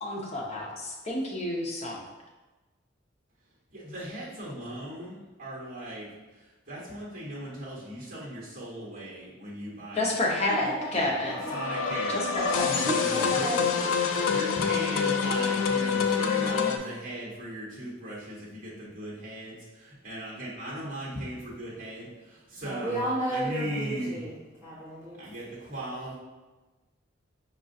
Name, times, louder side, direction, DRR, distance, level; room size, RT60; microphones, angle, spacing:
voice 1, 0.0-2.0 9.9-11.4 12.1-12.7, left 1 dB, 35° left, -2 dB, 0.6 m, -29 dB
voice 2, 3.7-10.6 10.9-13.7 14.2-22.1 22.6-24.2 25.2-26.1, right 1 dB, 45° right, -6 dB, 1.2 m, -38 dB
sound 1, 11.2-16.8, left 6 dB, 90° left, 0.4 m, -26 dB
voice 3, 12.7-13.7 14.0-14.3 14.9-15.4 22.6-24.4 24.6-25.2, right 1 dB, 10° right, -12 dB, 1.0 m, -33 dB
5.2 x 2.4 x 2.6 m, 1.2 s
head